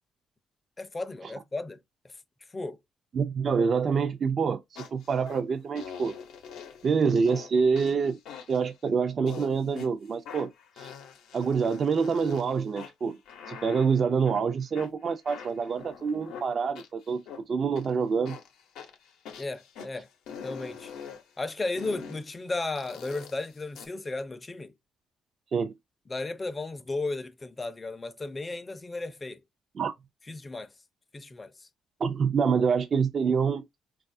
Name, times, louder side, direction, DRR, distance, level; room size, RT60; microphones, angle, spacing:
voice 1, 0.8-1.8 2.0-2.1 2.5-2.8 19.4-20.1 20.4-20.9 21.4-24.7 26.1-29.4 30.3-30.7 31.1-31.7, left 2 dB, 25° left, 0.4 m, -34 dB
voice 2, 3.1-6.1 6.8-8.2 8.5-10.5 10.8-10.9 11.3-13.2 13.5-18.4 25.5-25.7 29.8-29.9 32.0-33.6, right 5 dB, 50° right, 0.4 m, -26 dB
sound 1, 4.8-5.4 5.8-6.9 7.3-7.5 7.8-8.7 9.3-9.9 10.3-12.4 12.8-14.4 14.7-17.4 17.8-17.9 18.3-19.9 20.3-21.2 21.8-22.2 22.8-23.9, left 7 dB, 90° left, 0.7 m, -44 dB
3.9 x 2.4 x 2.5 m
cardioid pair, 90°, 0 cm